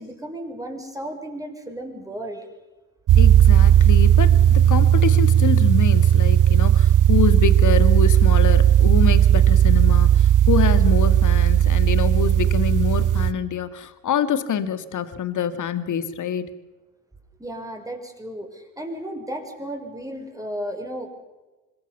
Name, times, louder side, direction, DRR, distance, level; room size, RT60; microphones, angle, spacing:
voice 1, 0.0-2.5 17.4-21.1, right 1 dB, 10° right, 2 dB, 6.2 m, -34 dB
sound 1, 3.1-13.3, right 10 dB, 45° right, 1.0 m, -15 dB
voice 2, 3.2-16.5, left 8 dB, 45° left, 12 dB, 2.3 m, -26 dB
26.5 x 20.5 x 7.0 m, 1.2 s
hypercardioid pair, 65°, 42 cm